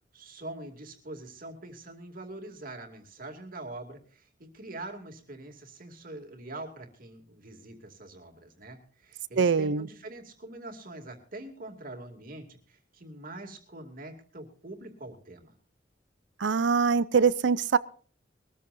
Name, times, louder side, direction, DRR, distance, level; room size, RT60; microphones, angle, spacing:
voice 1, 0.1-4.3 4.5-15.5, right 2 dB, 45° right, 2.5 m, -44 dB
voice 2, 9.4-9.9 16.4-17.8, right 5 dB, 65° right, 0.5 m, -23 dB
22.0 x 14.0 x 2.6 m
head